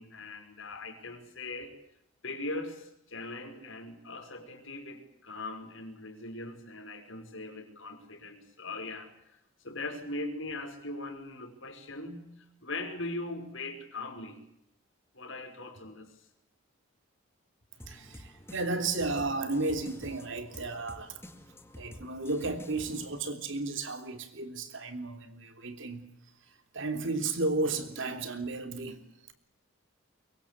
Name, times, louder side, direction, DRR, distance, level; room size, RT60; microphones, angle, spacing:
voice 1, 0.0-1.7 2.2-9.4 9.6-12.3 12.6-14.4 15.1-16.2, left 2 dB, 60° left, 5.4 m, -40 dB
sound 1, 17.8-23.3, equal, 10° left, 2.2 m, -50 dB
voice 2, 17.8-21.2 21.8-26.1 26.5-29.0, right 3 dB, 60° right, 3.3 m, -33 dB
24.0 x 23.0 x 8.3 m
head